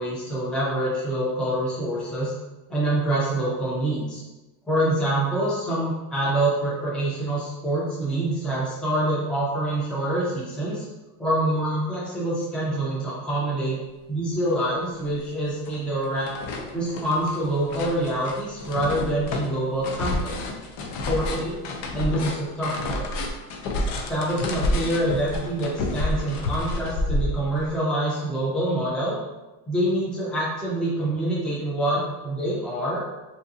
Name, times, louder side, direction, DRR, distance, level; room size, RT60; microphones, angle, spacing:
voice 1, 0.0-2.3 2.7-4.2 4.7-10.9 11.2-13.8 14.1-16.3 16.7-20.4 21.1-21.6 21.9-23.1 24.1-29.2 29.7-33.0, right 1 dB, ahead, -7 dB, 0.6 m, -26 dB
sound 1, 14.6-14.7 15.0-27.7, left 2 dB, 65° left, 0.7 m, -29 dB
3.6 x 2.8 x 2.7 m, 1.1 s
cardioid pair, 135°, 44 cm